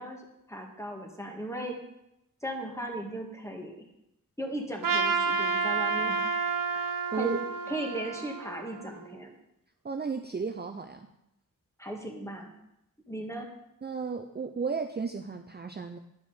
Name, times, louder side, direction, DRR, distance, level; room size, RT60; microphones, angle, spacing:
voice 1, 0.0-1.8 2.4-3.8 4.4-6.3 6.7-6.8 7.1-7.4 7.7-9.4 11.8-12.5 13.1-13.5, right 1 dB, 10° left, 1 dB, 1.8 m, -37 dB
Trumpet, 4.8-9.1, right 5 dB, 70° right, 0.7 m, -30 dB
voice 2, 7.1-7.4 9.8-11.1 13.8-16.0, right 5 dB, 30° right, 5 dB, 0.5 m, -34 dB
10.0 x 4.9 x 5.6 m, 0.83 s
wide cardioid pair, 65°, 34 cm